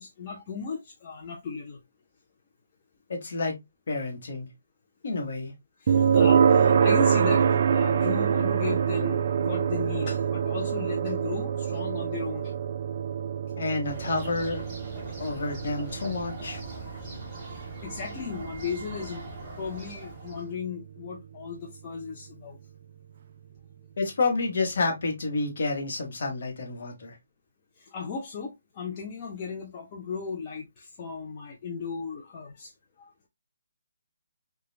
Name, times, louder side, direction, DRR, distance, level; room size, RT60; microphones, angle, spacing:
voice 1, 0.0-1.8 5.8-12.5 17.5-19.3 19.6-22.6 27.8-32.7 33.0-33.1, left 5 dB, 30° left, 0.5 m, -36 dB
voice 2, 3.1-3.5 3.9-4.5 5.0-5.5 13.6-14.7 15.2-16.6 24.0-27.2, left 3 dB, 55° left, 1.0 m, -29 dB
sound 1, 5.9-20.8, right 7 dB, 45° right, 0.3 m, -26 dB
sound 2, 13.8-20.5, right 1 dB, 15° right, 1.2 m, -42 dB
3.1 x 2.3 x 2.3 m
hypercardioid pair, 160°, 0 cm